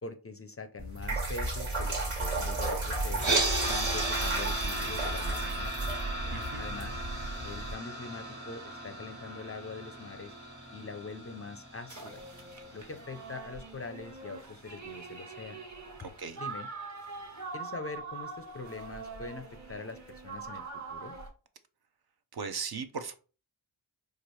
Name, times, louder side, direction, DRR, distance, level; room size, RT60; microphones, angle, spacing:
voice 1, 0.0-3.2 3.7-5.7 6.6-7.0 7.4-10.3 10.7-12.2 12.7-15.6 16.0-16.1 16.4-16.7 17.5-21.2, left 4 dB, 30° left, 9 dB, 0.4 m, -43 dB
sound 1, 0.8-7.7, right 2 dB, 85° right, 1.8 m, -33 dB
sound 2, 3.2-13.3, right 2 dB, 70° right, 1.6 m, -35 dB
voice 2, 6.3-6.6 16.0-16.4 22.3-23.2, right 5 dB, 50° right, 9 dB, 0.6 m, -38 dB
sound 3, 11.9-21.3, right 4 dB, 35° right, 1.1 m, -43 dB
4.4 x 2.4 x 3.1 m, 0.36 s
cardioid pair, 55°, 49 cm